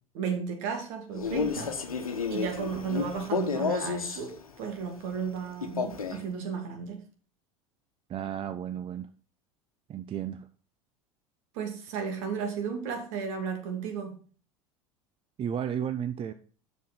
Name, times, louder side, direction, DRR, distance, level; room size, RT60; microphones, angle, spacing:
voice 1, 0.1-1.8 2.3-7.0 11.5-14.2, right 6 dB, 60° right, 2.5 m, -34 dB
Male speech man speaking, 1.1-4.3 5.6-6.3, left 5 dB, 85° left, 1.1 m, -31 dB
voice 2, 8.1-9.1 9.9-10.5 15.4-16.3, right 9 dB, 30° right, 0.6 m, -33 dB
7.6 x 6.4 x 5.1 m
figure-of-eight pair, 75°, 18 cm